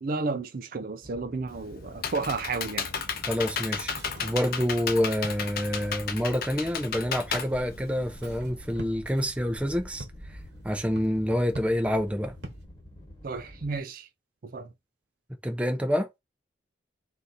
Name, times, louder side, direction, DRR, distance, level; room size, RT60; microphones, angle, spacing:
voice 1, 0.0-2.9 13.2-14.1 14.4-14.7, right 3 dB, 50° right, 0.4 m, -32 dB
sound 1, 1.0-13.8, equal, 25° left, 1.4 m, -48 dB
Computer keyboard, 1.5-8.4, left 6 dB, 55° left, 0.6 m, -33 dB
voice 2, 3.3-10.0 10.6-12.3 15.4-16.1, equal, 5° right, 0.6 m, -27 dB
sound 2, 3.8-12.6, right 1 dB, 65° right, 1.1 m, -46 dB
3.9 x 2.7 x 4.0 m
head